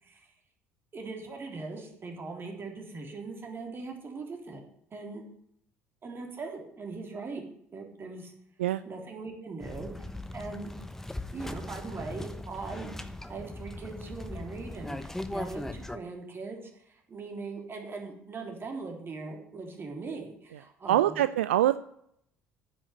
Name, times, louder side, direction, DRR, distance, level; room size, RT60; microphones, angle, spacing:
voice 1, 0.9-4.6 4.9-5.2 6.0-7.4 7.7-8.3 8.9-9.9 10.3-10.7 11.3-13.0 13.3-21.3, right 3 dB, 35° right, 2 dB, 3.7 m, -40 dB
sound 1, 9.6-16.0, left 1 dB, 5° left, 1.1 m, -39 dB
voice 2, 20.9-21.8, right 13 dB, 75° right, 14 dB, 0.4 m, -24 dB
10.0 x 8.7 x 8.4 m, 0.70 s
figure-of-eight pair, 60°, 7 cm